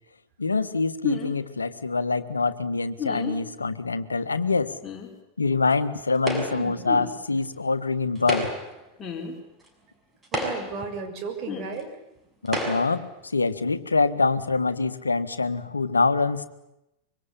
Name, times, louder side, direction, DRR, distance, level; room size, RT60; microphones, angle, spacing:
voice 1, 0.4-4.7 5.4-8.5 12.4-16.4, left 3 dB, 75° left, 12 dB, 1.5 m, -25 dB
sound 1, 1.0-1.3 3.0-3.4 4.8-5.1 6.9-7.1 9.0-9.3 11.5-11.7, left 8 dB, 20° left, 5.6 m, -32 dB
sound 2, 6.3-6.8 8.1-8.8 9.7-9.8 10.2-10.9 11.8-11.9 12.5-13.0, right 1 dB, 15° right, 6.3 m, -30 dB
voice 2, 6.4-7.0 10.3-11.9, right 4 dB, 40° right, 4 dB, 6.7 m, -35 dB
25.5 x 24.0 x 8.6 m, 0.87 s
figure-of-eight pair, 90°, 0 cm